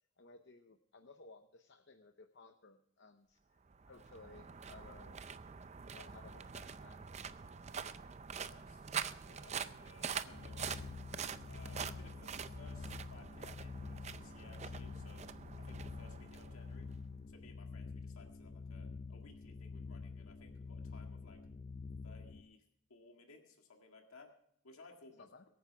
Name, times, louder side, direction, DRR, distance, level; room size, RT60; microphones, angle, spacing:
voice 1, 0.2-3.6 3.9-5.2 5.9-7.5 25.2-25.4, left 3 dB, 55° left, 6 dB, 0.8 m, -58 dB
sound 1, 3.7-17.1, right 6 dB, 30° right, 0.5 m, -45 dB
voice 2, 8.4-8.9 9.2-10.9 11.5-16.9 17.3-21.4 22.0-22.6 22.9-24.3 24.6-25.3, left 3 dB, 90° left, 2 dB, 1.9 m, -60 dB
sound 2, 10.3-22.4, left 4 dB, 35° left, 0.4 m, -48 dB
23.0 x 9.5 x 3.4 m, 0.73 s
head